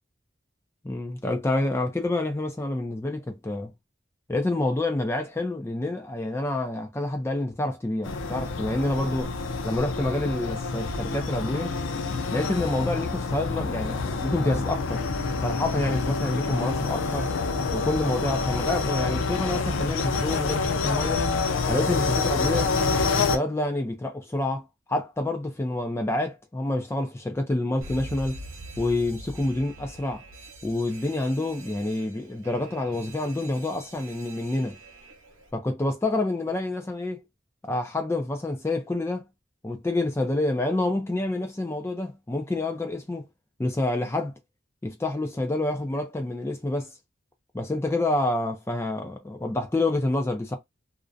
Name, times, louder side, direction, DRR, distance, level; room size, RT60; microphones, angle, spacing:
voice 1, 0.8-3.7 4.3-9.3 9.6-11.7 12.3-15.0 15.4-17.3 17.7-21.3 21.7-22.7 23.2-28.4 28.8-30.2 30.6-34.8 35.5-37.2 37.6-39.3 39.6-43.3 43.6-44.3 44.8-46.9 47.5-50.6, left 2 dB, 15° left, 0.3 m, -28 dB
sound 1, 8.0-23.4, left 4 dB, 80° left, 0.4 m, -27 dB
Alarm, 27.8-35.5, right 1 dB, 90° right, 0.7 m, -44 dB
2.4 x 2.0 x 2.5 m
head